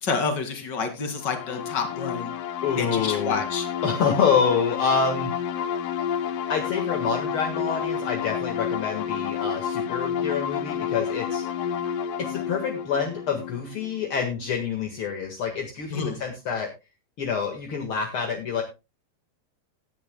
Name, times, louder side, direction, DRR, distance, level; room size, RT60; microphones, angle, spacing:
voice 1, 0.0-2.3 2.8-3.7 15.9-16.2, left 5 dB, 35° left, 6 dB, 2.1 m, -29 dB
sound 1, 1.1-14.6, left 8 dB, 70° left, 2.1 m, -30 dB
voice 2, 2.6-3.4 3.8-5.3 6.5-11.5 12.2-16.7 17.2-18.6, left 6 dB, 50° left, 4 dB, 1.6 m, -27 dB
18.0 x 10.5 x 2.3 m, 0.26 s
omnidirectional pair, 4.8 m